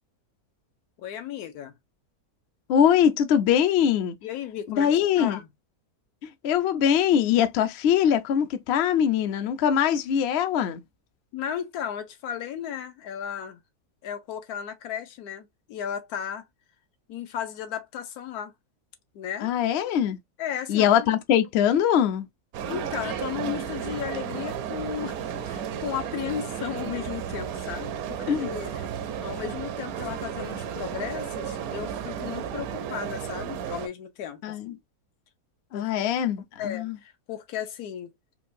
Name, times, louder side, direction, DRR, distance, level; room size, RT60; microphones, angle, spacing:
voice 1, 1.0-1.7 4.2-4.9 5.2-5.5 11.3-13.6 14.0-16.4 17.1-18.5 19.1-19.5 20.4-21.1 22.7-28.7 29.2-34.8 35.7-35.9 36.6-38.1, left 9 dB, 85° left, 1.2 m, -35 dB
voice 2, 2.7-4.1 4.7-5.4 6.2-10.8 19.4-20.2 20.7-22.3 28.3-28.5 34.4-34.7 35.7-37.0, left 9 dB, 65° left, 0.6 m, -22 dB
sound 1, 22.5-33.9, right 8 dB, 75° right, 1.0 m, -33 dB
4.5 x 2.2 x 2.5 m
omnidirectional pair, 1.6 m